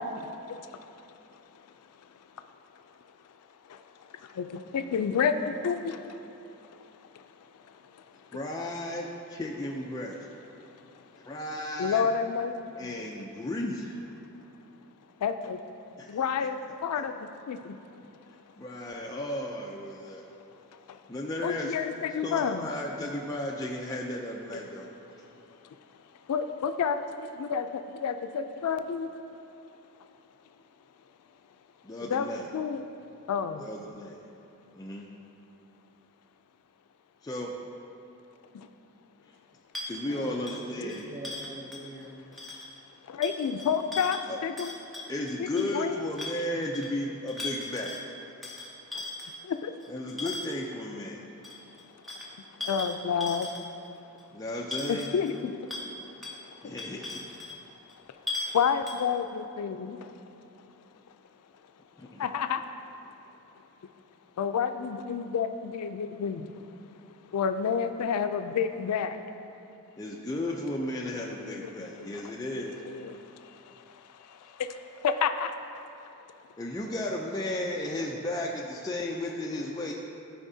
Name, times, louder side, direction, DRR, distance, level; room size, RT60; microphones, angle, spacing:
voice 1, 4.4-5.3 5.6-6.0 11.8-12.5 15.2-15.6 16.1-16.6 16.8-17.1 17.5-17.6 21.4-22.7 26.3-27.0 27.4-27.7 28.0-29.1 32.1-32.8 33.3-33.6 43.1-44.2 44.4-44.7 45.4-46.0 49.6-49.7 52.7-53.5 54.9-55.5 58.5-60.0 62.2-62.6 64.4-66.5 67.3-69.2 71.1-71.7 72.0-72.1 72.6-73.2 75.0-75.5, left 7 dB, 90° left, 8 dB, 0.3 m, -29 dB
voice 2, 8.3-10.3 11.2-12.1 12.8-14.0 16.0-16.2 18.6-20.3 21.1-21.7 22.2-24.9 31.8-32.5 33.6-34.2 34.8-35.1 37.2-37.5 39.9-41.1 44.3-44.4 45.1-48.0 49.9-51.2 54.3-55.1 56.6-57.2 62.0-62.3 70.0-72.8 76.6-79.9, left 1 dB, 15° left, -2 dB, 0.4 m, -34 dB
sound 1, 39.7-42.1 42.3-42.8 43.2-45.8 46.2-46.9 47.3-48.0 48.4-50.7 51.4-53.9 54.2-54.3 54.7-55.4 55.7-55.9 56.2-56.4 56.8-57.6 57.9-58.0 58.3-58.6 58.9-59.1, left 2 dB, ahead, 0.8 m, -38 dB
voice 3, 40.1-42.2, right 1 dB, 35° right, -2 dB, 0.8 m, -42 dB
13.5 x 4.9 x 2.7 m, 2.8 s
head